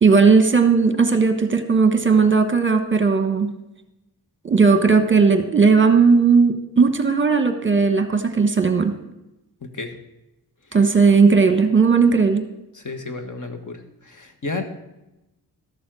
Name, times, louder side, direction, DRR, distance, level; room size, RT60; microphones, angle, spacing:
voice 1, 0.0-3.5 4.4-8.9 10.7-12.4, right 5 dB, 30° right, 8 dB, 1.1 m, -16 dB
voice 2, 9.6-9.9 10.7-10.8 12.7-14.6, left 3 dB, 50° left, 7 dB, 1.5 m, -32 dB
13.0 x 7.1 x 6.3 m, 0.95 s
cardioid pair, 80°, 40 cm